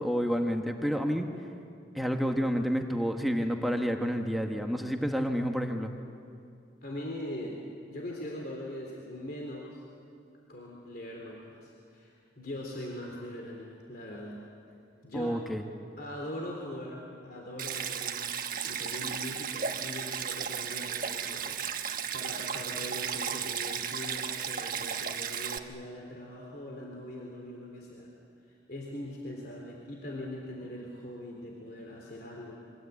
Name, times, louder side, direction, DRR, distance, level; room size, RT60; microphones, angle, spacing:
voice 1, 0.0-1.3 1.9-6.0 15.1-15.6, equal, ahead, 3 dB, 1.4 m, -29 dB
voice 2, 6.8-7.6 7.9-9.8 10.5-14.4 15.0-15.4 16.0-28.1 28.4-32.5, left 1 dB, 50° left, -1 dB, 3.6 m, -41 dB
Stream, 17.6-25.6, right 7 dB, 45° right, 1.3 m, -34 dB
28.5 x 24.0 x 8.5 m, 2.5 s
head